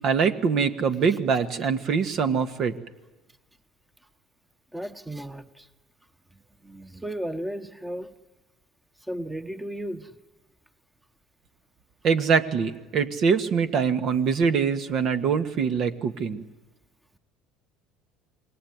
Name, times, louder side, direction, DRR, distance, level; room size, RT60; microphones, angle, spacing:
voice 1, 0.0-2.7 12.0-16.4, right 6 dB, 55° right, 9 dB, 1.7 m, -24 dB
voice 2, 4.7-5.7 6.3-8.1 9.0-10.2, right 1 dB, 5° right, 11 dB, 1.3 m, -35 dB
27.0 x 22.0 x 9.5 m, 1.1 s
hypercardioid pair, 75°, 0 cm